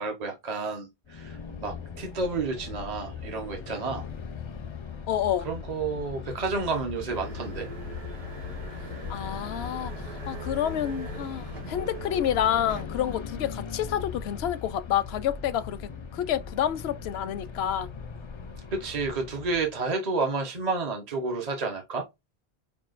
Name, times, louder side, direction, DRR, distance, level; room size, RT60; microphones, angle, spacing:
voice 1, 0.0-4.1 5.4-7.7 18.7-22.0, right 3 dB, 45° right, 0.9 m, -30 dB
sound 1, 1.1-19.8, left 6 dB, 40° left, 0.4 m, -39 dB
voice 2, 5.1-5.5 9.1-17.9, left 10 dB, 80° left, 0.8 m, -29 dB
sound 2, 7.1-12.8, right 2 dB, 75° right, 1.4 m, -41 dB
5.5 x 2.4 x 2.4 m
omnidirectional pair, 1.0 m